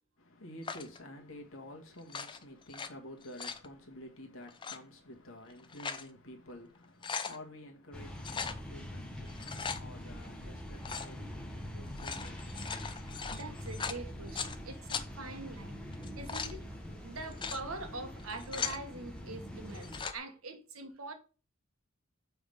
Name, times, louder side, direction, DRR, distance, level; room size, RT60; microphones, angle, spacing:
voice 1, 0.2-13.2, left 1 dB, 70° left, 1.6 m, -50 dB
sound 1, 0.6-1.0 2.0-2.9 3.2-3.7 4.5-4.8 5.5-6.1 6.5-6.6 6.8-7.4 8.2-8.6 9.3-9.8 10.8-11.1 11.8-14.6 14.9-15.0 15.9-16.5 17.2-17.6 18.2-18.8 19.7-20.2, left 6 dB, 20° left, 0.5 m, -39 dB
sound 2, 7.9-20.0, equal, 5° left, 1.0 m, -44 dB
voice 2, 13.3-15.8 16.2-16.6 17.0-21.1, right 2 dB, 80° right, 1.4 m, -44 dB
6.9 x 3.5 x 5.4 m
head